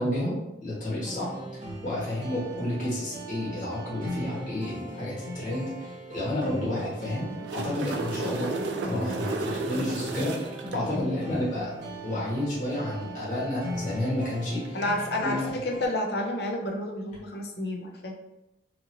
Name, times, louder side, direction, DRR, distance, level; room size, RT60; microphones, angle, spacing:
voice 1, 0.0-1.3 1.8-8.6 8.8-10.4 10.7-11.7 12.0-14.8 15.2-15.5, left 1 dB, 45° left, -7 dB, 1.2 m, -31 dB
sound 1, 1.0-15.9, right 1 dB, 45° right, 0.8 m, -39 dB
sound 2, 7.2-10.8 14.6-14.8, right 3 dB, 85° right, 0.4 m, -33 dB
voice 2, 10.9-11.4 14.7-18.1, left 1 dB, 65° left, 2 dB, 0.5 m, -30 dB
2.9 x 2.6 x 2.6 m, 0.93 s
head